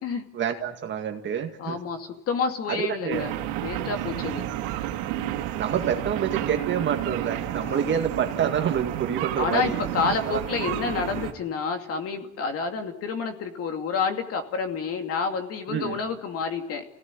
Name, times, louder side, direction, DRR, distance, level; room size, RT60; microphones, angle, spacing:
voice 1, 0.3-1.8 2.7-3.4 5.6-9.8 10.3-10.4 15.7-16.0, right 8 dB, 30° right, 5 dB, 2.1 m, -27 dB
voice 2, 1.6-3.3 3.6-4.4 7.6-7.8 9.4-16.8, left 5 dB, 40° left, 6 dB, 2.6 m, -29 dB
sound 1, 3.1-11.3, right 13 dB, 80° right, 2.6 m, -31 dB
28.5 x 17.5 x 9.8 m, 0.83 s
cardioid pair, 150°, 36 cm